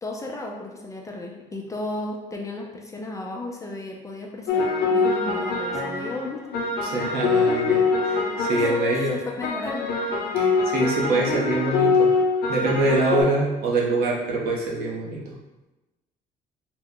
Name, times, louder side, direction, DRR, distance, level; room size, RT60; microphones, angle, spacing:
voice 1, 0.0-6.6 8.5-10.0, left 2 dB, 20° left, -1 dB, 0.5 m, -34 dB
sound 1, 4.5-13.2, left 4 dB, 70° left, 0.6 m, -24 dB
voice 2, 6.8-9.1 10.4-12.1 12.5-15.3, right 2 dB, 70° right, -3 dB, 0.8 m, -24 dB
2.9 x 2.2 x 3.6 m, 1.1 s
cardioid pair, 110°, 17 cm